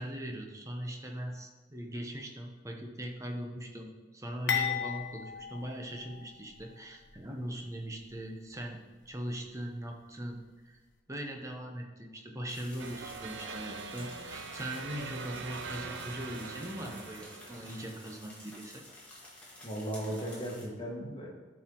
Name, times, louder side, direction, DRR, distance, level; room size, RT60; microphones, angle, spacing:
voice 1, 0.0-10.8 11.1-18.8, right 1 dB, 15° right, 2 dB, 0.9 m, -40 dB
sound 1, 4.5-6.6 7.0-7.2 8.0-8.2, left 7 dB, 70° left, 1.1 m, -35 dB
sound 2, 12.5-20.7, left 1 dB, 5° left, 1.7 m, -51 dB
sound 3, 12.8-18.3, right 4 dB, 75° right, 0.7 m, -43 dB
voice 2, 19.6-21.3, right 1 dB, 25° left, -2 dB, 1.6 m, -36 dB
12.0 x 4.6 x 3.9 m, 1.3 s
head